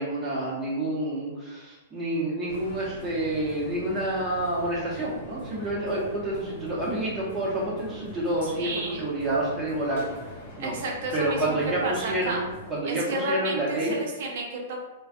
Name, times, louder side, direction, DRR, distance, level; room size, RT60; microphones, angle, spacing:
voice 1, 0.0-8.7 9.0-10.1 10.6-10.7 11.1-12.4 12.7-13.9, right 1 dB, 20° right, -6 dB, 1.0 m, -28 dB
sound 1, 2.5-12.7, equal, 55° left, 0.9 m, -43 dB
voice 2, 8.6-9.0 10.6-11.6 11.8-12.4 12.8-14.9, right 1 dB, 60° right, 0 dB, 0.6 m, -31 dB
2.4 x 2.3 x 2.6 m, 1.2 s
hypercardioid pair, 125°, 0 cm